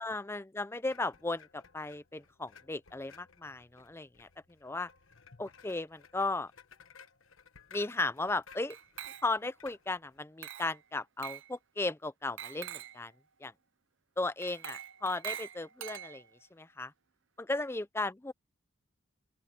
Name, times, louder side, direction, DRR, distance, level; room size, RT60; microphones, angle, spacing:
voice 1, 0.0-4.3 4.6-4.9 5.4-6.5 7.7-8.8 9.2-13.1 13.4-13.5 14.2-16.2 16.5-16.9 17.5-18.3, left 2 dB, 10° left, 0.5 m, -35 dB
sound 1, 0.9-10.2, left 6 dB, 80° left, 1.2 m, -58 dB
Glass, 8.7-9.5 10.4-10.8 11.2-11.5 12.4-13.0 14.4-16.4, right 10 dB, 65° right, 0.7 m, -44 dB
open air
head